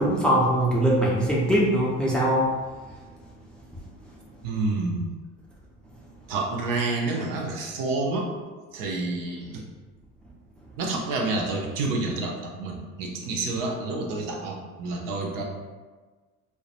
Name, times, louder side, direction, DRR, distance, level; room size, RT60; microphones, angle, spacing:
voice 1, 0.0-2.5, right 1 dB, ahead, -5 dB, 0.5 m, -21 dB
voice 2, 4.4-5.1 6.3-8.3 8.7-9.6 10.8-15.4, right 3 dB, 55° right, 0 dB, 0.5 m, -29 dB
2.2 x 2.1 x 2.8 m, 1.4 s
hypercardioid pair, 60°, 41 cm